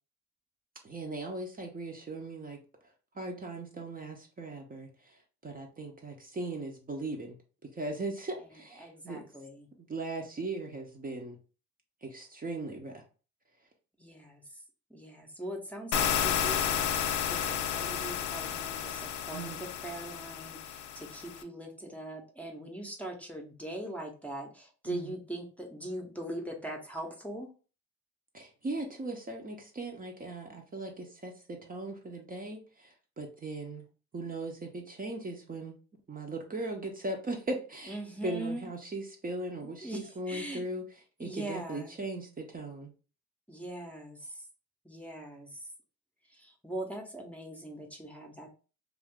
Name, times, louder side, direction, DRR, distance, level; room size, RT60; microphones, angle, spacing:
voice 1, 0.8-7.4 7.6-9.3 9.9-11.4 12.0-13.0 19.3-19.6 24.9-25.2 28.3-33.8 34.1-35.7 36.1-40.8 41.2-42.9, right 2 dB, 30° right, 2 dB, 0.7 m, -39 dB
voice 2, 8.8-9.7 14.0-14.6 14.9-27.5 37.9-38.7 39.8-40.6 41.2-41.9 43.5-44.4 44.8-45.6 46.3-48.5, right 1 dB, 5° left, 1 dB, 0.7 m, -41 dB
sound 1, 15.9-21.4, left 9 dB, 75° left, 0.5 m, -32 dB
2.5 x 2.4 x 3.5 m, 0.36 s
cardioid pair, 90°, 30 cm